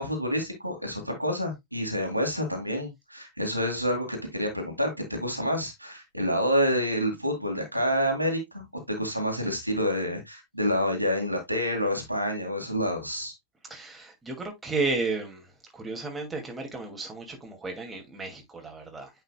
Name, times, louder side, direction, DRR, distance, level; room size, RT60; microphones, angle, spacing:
voice 1, 0.0-13.3, equal, 90° right, 2.2 m, -28 dB
voice 2, 13.7-15.4 15.7-19.1, right 3 dB, 10° right, 2.4 m, -33 dB
8.9 x 5.6 x 2.3 m
figure-of-eight pair, 90°, 0 cm